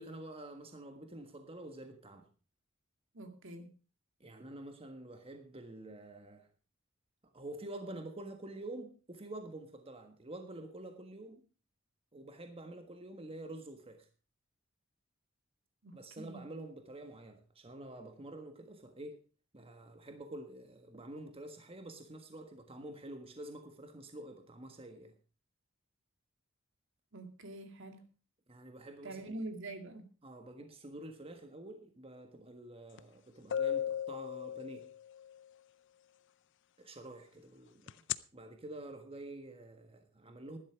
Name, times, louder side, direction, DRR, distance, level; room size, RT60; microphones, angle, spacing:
voice 1, 0.0-2.3 4.2-6.5 7.3-11.4 12.1-14.1 15.9-19.2 19.5-25.1 28.5-29.4 30.2-34.9 36.8-38.0 38.3-40.6, right 1 dB, 30° right, 6 dB, 1.5 m, -48 dB
voice 2, 3.1-3.7 15.8-16.4 27.1-28.0 29.0-30.1, right 2 dB, 65° right, 7 dB, 2.2 m, -45 dB
sound 1, 33.0-33.1 33.5-35.2 37.9-38.2, left 9 dB, 60° left, 0.5 m, -35 dB
12.0 x 11.5 x 4.9 m, 0.36 s
head